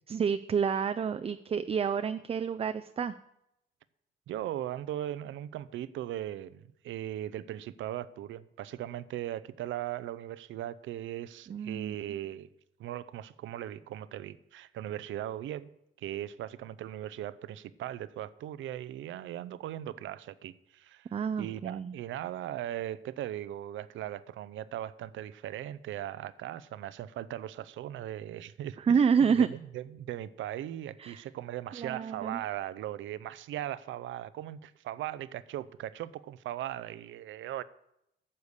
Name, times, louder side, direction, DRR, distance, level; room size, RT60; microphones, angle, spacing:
voice 1, 0.1-3.1 11.5-12.0 21.1-21.9 28.8-29.5 31.0-31.2 31.7-32.4, right 6 dB, 30° right, 0.4 m, -28 dB
voice 2, 4.3-12.5 12.8-15.7 16.0-21.1 21.4-28.8 29.2-37.6, right 12 dB, 75° right, 0.6 m, -38 dB
9.7 x 6.9 x 6.5 m
cardioid pair, 90°, 20 cm